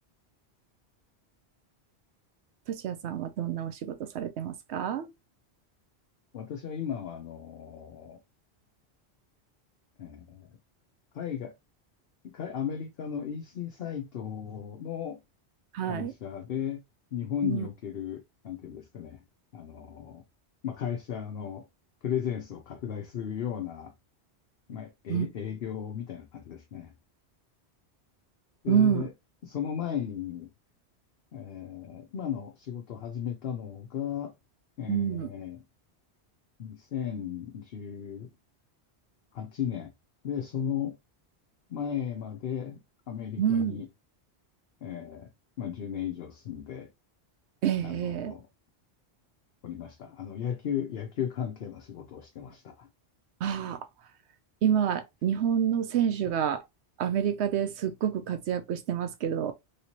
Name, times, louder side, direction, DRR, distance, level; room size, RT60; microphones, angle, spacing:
voice 1, 2.7-5.1 15.7-16.1 17.4-17.7 25.1-25.3 28.7-29.1 34.9-35.3 43.4-43.8 47.6-48.4 53.4-53.8 54.6-56.6 57.0-59.5, right 9 dB, 80° right, 0.9 m, -28 dB
voice 2, 6.3-8.2 10.0-10.5 11.1-11.5 12.2-15.2 15.9-16.8 17.1-19.2 19.5-20.2 20.6-21.7 22.0-23.9 24.7-26.9 28.6-29.1 29.4-30.5 31.3-34.3 34.8-35.6 36.6-38.3 39.3-39.9 40.2-41.0 41.7-42.8 43.1-43.9 44.8-45.3 45.6-46.9 47.8-48.5 49.6-52.9, left 9 dB, 65° left, 0.8 m, -35 dB
3.2 x 2.9 x 2.9 m
omnidirectional pair, 1.1 m